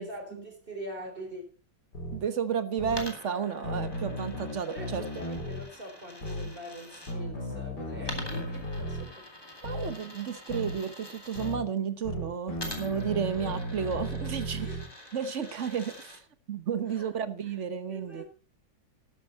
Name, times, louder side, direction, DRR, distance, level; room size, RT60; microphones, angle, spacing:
voice 1, 0.0-1.4 2.9-3.0 4.7-9.3 10.5-10.7 14.5-14.9 16.9-17.2 17.4-17.6 17.9-18.3, right 1 dB, 30° right, 3.9 m, -43 dB
sound 1, 1.9-2.2 2.8-3.0 3.6-5.6 6.2-6.5 7.1-9.0 9.6-9.9 10.5-10.8 11.4-11.6 12.0-14.8, equal, 60° left, 4.5 m, -35 dB
voice 2, 2.1-5.0 9.6-14.7 15.1-16.2 16.5-18.2, right 7 dB, 45° right, 1.2 m, -32 dB
Coin (dropping), 2.9-7.1 8.0-11.6 12.5-16.2, left 1 dB, 15° left, 2.2 m, -45 dB
13.0 x 11.5 x 4.1 m
omnidirectional pair, 2.0 m